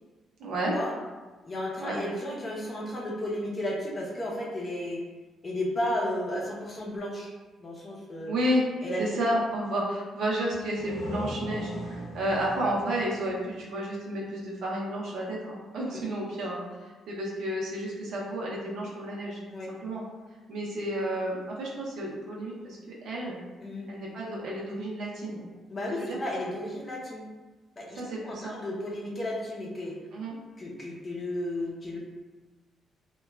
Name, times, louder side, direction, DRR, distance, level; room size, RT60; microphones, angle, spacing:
voice 1, 0.4-0.7 1.8-2.0 8.3-8.6 9.0-16.6 17.1-19.4 19.7-20.0 20.5-23.4 23.9-25.4 25.9-26.2 27.9-28.6 30.1-30.3, right 1 dB, 75° right, -3 dB, 0.6 m, -31 dB
voice 2, 1.4-5.0 5.4-7.3 7.6-8.4 8.8-9.1 15.9-16.0 19.5-19.7 23.6-23.9 25.7-27.2 27.8-30.0 30.6-32.0, left 1 dB, 35° left, -2 dB, 0.6 m, -33 dB
sound 1, 10.5-14.1, equal, 70° left, 0.6 m, -40 dB
2.9 x 2.2 x 2.2 m, 1.3 s
cardioid pair, 90°, 0 cm